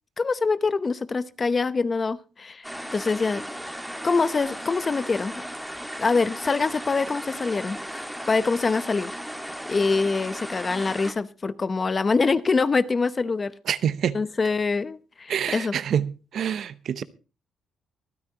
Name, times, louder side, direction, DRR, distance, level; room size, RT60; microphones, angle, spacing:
voice 1, 0.2-2.7 2.9-3.4 4.0-5.4 6.0-9.1 9.7-13.5 14.1-15.8, left 4 dB, 30° left, 0.8 m, -24 dB
sound 1, 2.6-11.1, equal, ahead, 1.9 m, -36 dB
voice 2, 13.7-14.2 15.3-17.0, right 8 dB, 65° right, 0.8 m, -26 dB
24.5 x 9.7 x 2.9 m
cardioid pair, 90°, 0 cm